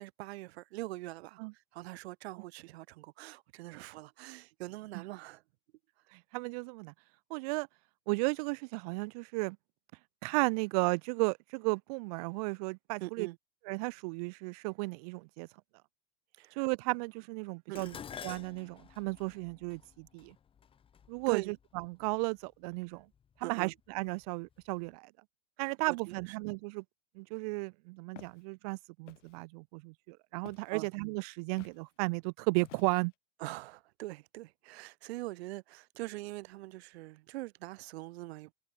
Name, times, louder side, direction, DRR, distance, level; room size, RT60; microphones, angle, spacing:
voice 1, 0.0-5.4 13.0-13.4 16.3-16.7 17.7-18.0 21.3-21.5 23.4-23.7 25.6-26.4 30.7-30.9 33.4-38.5, right 19 dB, 60° right, 1.3 m, -43 dB
voice 2, 6.1-6.9 7.3-7.7 8.1-9.6 10.2-13.3 13.7-15.5 16.6-17.9 18.2-20.4 21.1-23.1 23.4-25.1 25.6-26.8 27.2-33.1, right 29 dB, 35° right, 0.4 m, -34 dB
Dishes pots and pans, 17.8-22.1 23.0-23.4 23.8-24.6 24.9-25.0, left 8 dB, 15° left, 1.0 m, -50 dB
Walk footsteps, 28.1-28.4 29.1-29.4 30.5-30.8 31.6-31.8 32.6-33.1, left 13 dB, 85° left, 1.5 m, -53 dB
supercardioid pair, 135°, 36 cm